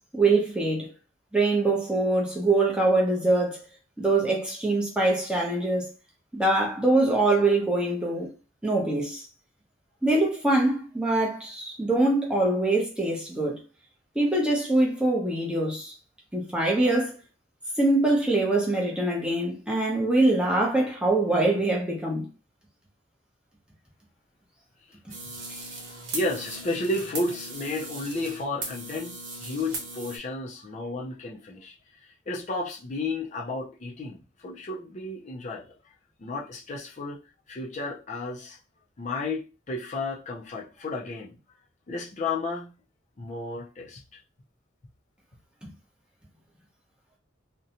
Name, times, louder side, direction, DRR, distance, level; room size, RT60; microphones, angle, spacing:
voice 1, 0.1-0.9 1.3-3.6 4.0-5.9 6.3-8.3 8.6-9.2 10.0-13.6 14.2-15.9 16.3-17.2 17.8-22.2 45.6-45.7, right 2 dB, 5° right, 0.6 m, -23 dB
sound 1, 25.1-30.2, right 3 dB, 85° right, 0.8 m, -38 dB
voice 2, 25.9-31.7 32.3-35.6 36.2-37.2 37.5-38.6 39.0-41.3 41.9-42.7 43.2-44.0, left 2 dB, 40° left, 0.4 m, -32 dB
2.5 x 2.1 x 2.7 m
head